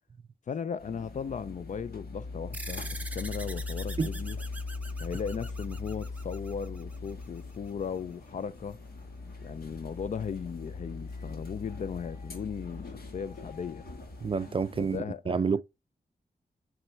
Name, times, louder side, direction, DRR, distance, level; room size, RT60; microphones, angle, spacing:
voice 1, 0.5-4.4 5.0-8.8 9.4-13.9 14.8-15.6, left 6 dB, 50° left, 0.4 m, -37 dB
sound 1, 0.8-15.0, left 3 dB, 70° left, 1.8 m, -40 dB
sound 2, 2.5-7.4, right 2 dB, 10° right, 0.8 m, -44 dB
Rain, 3.2-14.8, right 1 dB, 15° left, 2.8 m, -60 dB
voice 2, 14.2-15.6, right 5 dB, 35° right, 0.4 m, -29 dB
7.7 x 3.1 x 4.4 m
wide cardioid pair, 150°, 16 cm